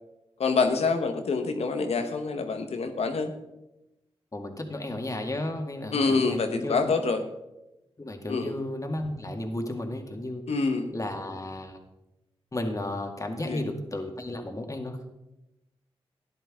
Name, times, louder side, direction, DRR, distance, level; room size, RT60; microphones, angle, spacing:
voice 1, 0.4-3.3 5.9-7.2 8.3-8.6 10.5-10.9 13.4-13.6, left 4 dB, 85° left, 7 dB, 1.2 m, -26 dB
voice 2, 4.3-6.8 8.0-10.4 10.9-11.8 12.5-15.2, left 1 dB, 30° left, 4 dB, 1.9 m, -33 dB
13.0 x 10.5 x 3.7 m, 0.96 s
cardioid pair, 55°, 10 cm